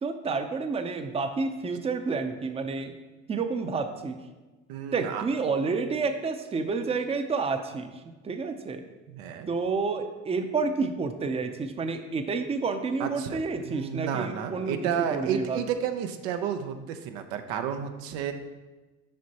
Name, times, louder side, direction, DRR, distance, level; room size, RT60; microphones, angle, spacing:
voice 1, 0.0-3.0 3.3-4.2 4.9-8.9 9.5-15.6, right 4 dB, 20° right, 8 dB, 0.5 m, -30 dB
voice 2, 4.7-5.2 9.1-9.5 13.0-13.4 13.6-18.3, right 8 dB, 85° right, 7 dB, 0.6 m, -31 dB
7.5 x 5.2 x 2.8 m, 1.2 s
supercardioid pair, 85°, 32 cm